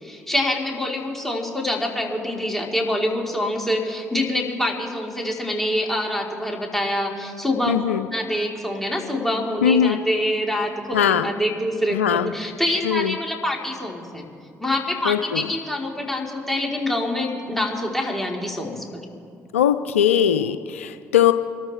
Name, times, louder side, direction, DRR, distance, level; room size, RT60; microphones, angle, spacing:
voice 1, 0.0-7.7 8.1-14.2 14.6-19.0, left 1 dB, 5° left, -1 dB, 3.5 m, -25 dB
voice 2, 7.7-8.1 9.6-10.0 10.9-11.3 11.9-12.3 12.8-13.2 15.1-15.5 19.5-21.3, left 9 dB, 85° left, 11 dB, 0.4 m, -20 dB
25.5 x 13.5 x 3.3 m, 2.4 s
hypercardioid pair, 50°, 7 cm